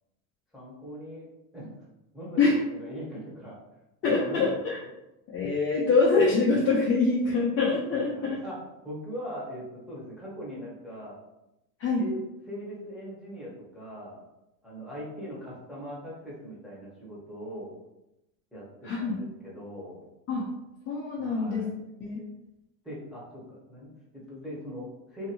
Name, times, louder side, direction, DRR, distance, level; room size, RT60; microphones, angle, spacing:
voice 1, 0.5-1.3 1.5-1.8 2.1-3.6 4.0-4.7 7.9-8.6 8.8-11.2 11.9-12.2 12.5-14.2 14.6-17.7 18.5-20.0 21.2-21.7 22.8-25.3, equal, ahead, -7 dB, 0.9 m, -41 dB
voice 2, 4.0-4.8 5.3-8.4 11.8-12.1 18.8-19.2 20.3-20.5 20.9-21.7 22.0-22.2, left 3 dB, 30° left, -5 dB, 0.5 m, -24 dB
2.8 x 2.6 x 2.7 m, 0.93 s
supercardioid pair, 120°, 49 cm